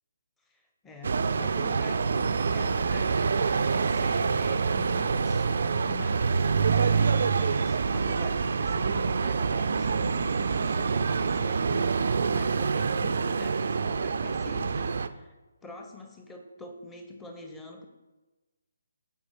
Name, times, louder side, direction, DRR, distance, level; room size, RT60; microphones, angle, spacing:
voice 1, 0.5-15.4 15.6-17.9, left 2 dB, 10° left, 3 dB, 0.7 m, -45 dB
sound 1, 1.0-15.1, right 5 dB, 50° right, 0.3 m, -26 dB
sound 2, 1.2-12.4, equal, 80° left, 1.6 m, -47 dB
7.2 x 4.4 x 4.2 m, 1.2 s
figure-of-eight pair, 145°, 0 cm